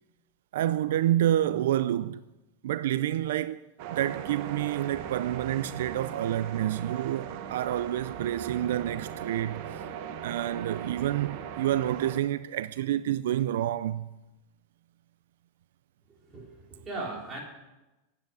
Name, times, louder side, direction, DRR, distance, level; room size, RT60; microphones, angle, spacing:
voice 1, 0.5-2.2 2.6-9.8 10.2-14.1, right 12 dB, 75° right, 0.4 m, -28 dB
sound 1, 3.8-12.2, right 9 dB, 50° right, 1.0 m, -39 dB
voice 2, 16.3-17.4, right 2 dB, 15° right, 3.7 m, -38 dB
9.6 x 9.0 x 9.2 m
supercardioid pair, 165°, 0 cm